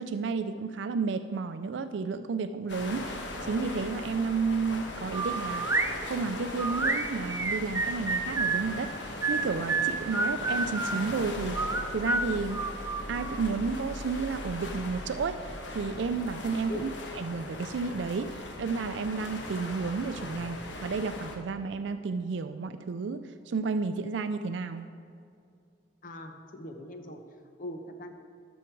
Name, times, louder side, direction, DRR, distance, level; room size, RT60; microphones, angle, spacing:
voice 1, 0.0-5.7 6.0-12.6 13.1-16.9 17.2-24.9, right 4 dB, 75° right, 9 dB, 0.4 m, -32 dB
sound 1, 2.7-21.4, left 2 dB, 75° left, 1.2 m, -39 dB
sound 2, 5.1-5.9 6.6-8.7 9.2-11.0 11.5-13.4, right 3 dB, 15° right, 0.4 m, -29 dB
voice 2, 26.0-27.2 27.6-28.1, left 1 dB, 50° left, 5 dB, 0.8 m, -40 dB
12.5 x 6.3 x 4.6 m, 2.4 s
head